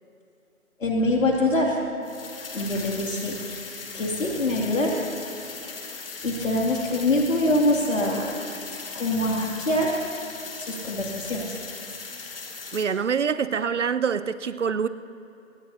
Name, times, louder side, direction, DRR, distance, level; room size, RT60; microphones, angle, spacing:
voice 1, 0.8-1.8 2.5-3.7 3.9-5.0 6.2-8.4 8.9-9.9 10.6-11.4, left 1 dB, 70° left, -1 dB, 2.7 m, -24 dB
sound 1, 2.0-12.8, left 4 dB, 45° left, 1.7 m, -38 dB
voice 2, 12.7-14.9, right 6 dB, 60° right, 14 dB, 0.7 m, -25 dB
23.5 x 19.5 x 2.8 m, 2.9 s
figure-of-eight pair, 160°, 41 cm